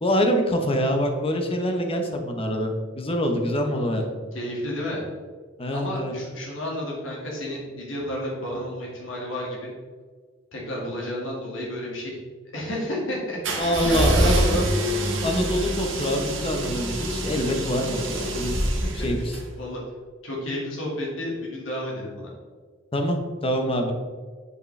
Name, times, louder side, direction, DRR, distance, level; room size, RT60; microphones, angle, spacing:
voice 1, 0.0-4.1 5.6-6.1 13.6-14.4 15.2-18.6 19.0-19.4 22.9-23.9, equal, 30° left, 4 dB, 0.9 m, -25 dB
voice 2, 4.3-5.0 5.7-9.7 10.5-12.2 12.5-14.6 18.8-19.3 19.6-19.8 20.2-22.3, left 1 dB, 85° left, -3 dB, 1.9 m, -31 dB
sound 1, 13.4-19.4, right 1 dB, 75° right, 1.2 m, -25 dB
7.9 x 5.1 x 3.3 m, 1.5 s
head